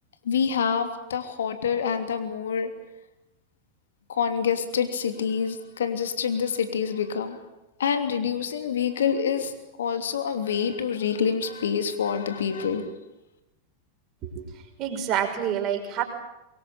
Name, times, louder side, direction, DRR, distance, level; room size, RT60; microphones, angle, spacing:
voice 1, 0.2-2.7 4.1-7.4 7.8-9.5 9.8-12.9, left 7 dB, 65° left, 8 dB, 3.0 m, -26 dB
voice 2, 14.8-16.0, right 9 dB, 35° right, 3 dB, 5.9 m, -27 dB
24.0 x 22.5 x 9.1 m, 0.93 s
figure-of-eight pair, 90°, 0 cm